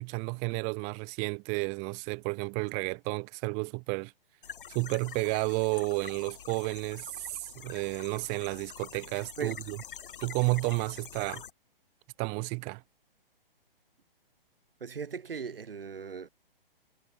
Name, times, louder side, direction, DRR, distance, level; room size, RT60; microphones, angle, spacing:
voice 1, 0.0-4.1 4.7-9.8 10.2-11.4 12.2-12.8, right 35 dB, 25° right, 1.0 m, -32 dB
sound 1, 4.4-11.5, left 8 dB, 60° left, 1.9 m, -46 dB
voice 2, 14.8-16.3, right 6 dB, 70° right, 4.4 m, -38 dB
figure-of-eight pair, 130°, 29 cm